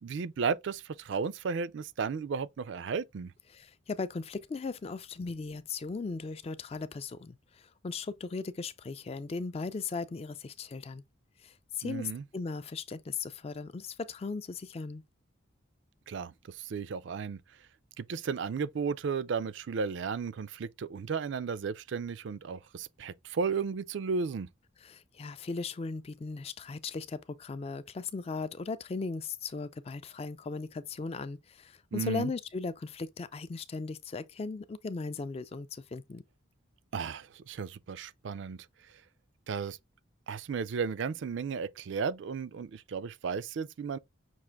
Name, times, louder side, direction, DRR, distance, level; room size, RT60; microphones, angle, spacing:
voice 1, 0.0-3.3 11.8-12.2 16.1-17.4 18.0-24.5 31.9-32.3 36.9-38.7 39.5-39.8 40.3-44.0, right 5 dB, 60° right, 0.4 m, -34 dB
voice 2, 3.5-11.0 11.4-15.0 24.8-36.2, left 4 dB, 30° left, 0.3 m, -37 dB
6.1 x 2.5 x 3.4 m
head